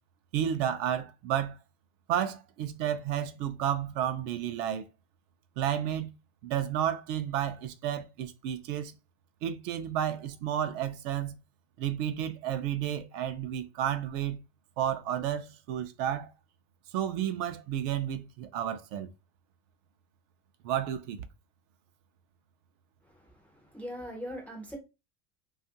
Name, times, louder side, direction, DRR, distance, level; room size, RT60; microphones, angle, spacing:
voice 1, 0.3-1.6 2.1-4.9 5.6-6.1 6.4-8.9 9.4-11.3 11.8-14.4 14.8-16.3 16.9-19.1 20.6-21.3, right 10 dB, 55° right, 0.4 m, -31 dB
voice 2, 23.1-24.8, equal, 5° left, 0.4 m, -41 dB
2.8 x 2.4 x 2.7 m
cardioid pair, 145°, 40 cm